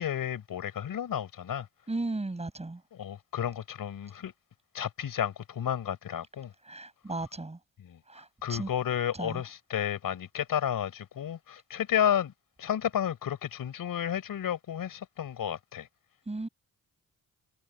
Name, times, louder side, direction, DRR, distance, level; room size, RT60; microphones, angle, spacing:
voice 1, 0.0-1.7 2.9-4.3 4.7-6.5 7.8-8.0 8.4-12.3 12.6-15.9, left 9 dB, 70° left, 5.4 m, -32 dB
voice 2, 1.9-2.8 6.7-7.6 8.1-8.7 9.2-9.4 16.3-16.5, right 2 dB, 20° right, 7.4 m, -35 dB
cardioid pair, 110°, 35 cm